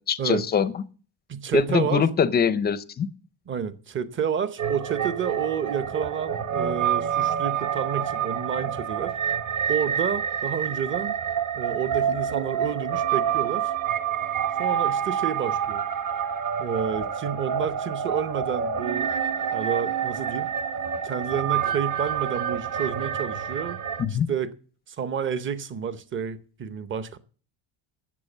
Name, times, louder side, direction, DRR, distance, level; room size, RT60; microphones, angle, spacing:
voice 1, 0.1-0.7 1.5-3.1 24.0-24.3, left 7 dB, 20° left, 0.5 m, -23 dB
voice 2, 1.3-2.1 3.5-9.1 9.7-11.1 11.5-13.7 14.6-15.8 16.6-19.1 19.5-20.5 21.0-23.8 24.1-24.5 24.9-27.2, right 7 dB, 25° right, 0.8 m, -30 dB
sound 1, 4.6-24.0, right 8 dB, 40° right, 1.2 m, -27 dB
12.0 x 8.0 x 7.2 m
cardioid pair, 155°, 47 cm